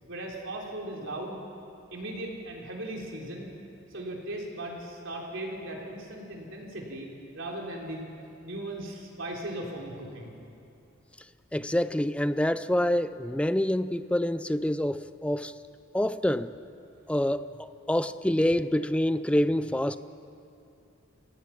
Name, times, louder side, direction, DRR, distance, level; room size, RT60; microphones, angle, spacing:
voice 1, 0.1-1.4 1.9-3.5 3.9-7.1 7.3-8.1 8.4-10.4, right 1 dB, 70° right, -1 dB, 3.5 m, -37 dB
voice 2, 11.5-15.5 15.9-16.5 17.1-20.0, left 1 dB, 5° left, 13 dB, 0.4 m, -26 dB
29.0 x 16.5 x 5.9 m, 2.7 s
head